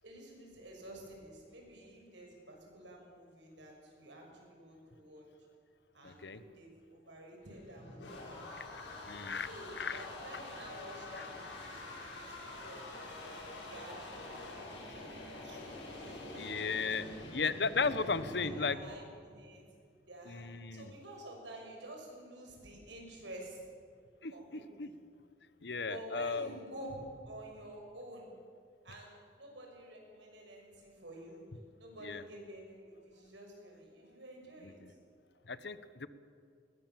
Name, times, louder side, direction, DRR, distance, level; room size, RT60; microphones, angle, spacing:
voice 1, 0.0-5.3 5.9-8.4 9.4-13.1 13.7-15.1 15.4-15.6 15.9-17.8 18.4-19.6 20.1-23.6 24.3-24.9 25.8-28.3 28.8-31.4 31.8-34.8, right 1 dB, 85° right, 1 dB, 6.5 m, -50 dB
voice 2, 6.0-6.4 8.6-8.8 9.1-9.5 9.8-10.1 11.1-11.3 16.3-17.1 17.3-18.8 20.3-20.9 24.2-24.9 25.6-26.5 32.0-32.2 34.6-34.9 35.5-36.1, left 4 dB, 65° left, 14 dB, 1.0 m, -36 dB
sound 1, 7.4-18.7, left 2 dB, 90° left, 6.7 m, -46 dB
21.0 x 20.5 x 7.6 m, 2.3 s
head